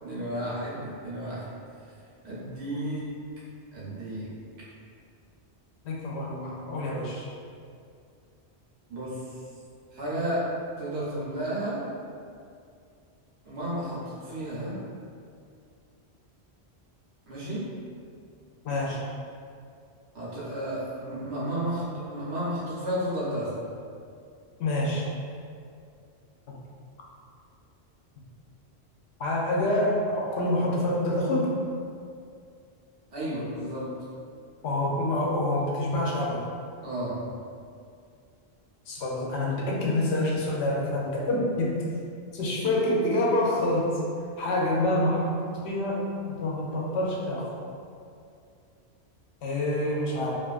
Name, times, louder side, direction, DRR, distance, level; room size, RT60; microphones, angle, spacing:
voice 1, 0.0-1.5 2.2-3.1 3.7-4.3 8.9-9.4 9.9-11.9 13.4-14.8 17.3-17.7 20.1-23.6 33.1-33.9 36.8-37.2, right 1 dB, 80° right, -8 dB, 1.0 m, -32 dB
voice 2, 5.8-7.2 18.6-19.0 24.6-25.0 29.2-31.5 34.6-36.4 38.9-41.7 42.3-43.9 44.4-47.5 49.4-50.4, left 1 dB, 85° left, -4 dB, 0.9 m, -27 dB
2.5 x 2.3 x 2.3 m, 2.3 s
omnidirectional pair, 1.1 m